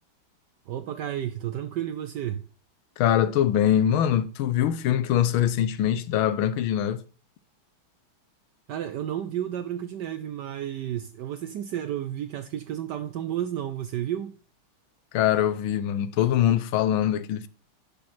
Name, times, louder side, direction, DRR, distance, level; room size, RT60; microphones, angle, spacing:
voice 1, 0.7-2.4 8.7-14.3, right 11 dB, 75° right, 1.0 m, -32 dB
voice 2, 3.0-7.0 15.1-17.5, left 10 dB, 75° left, 1.4 m, -23 dB
10.5 x 6.8 x 4.3 m
omnidirectional pair, 2.4 m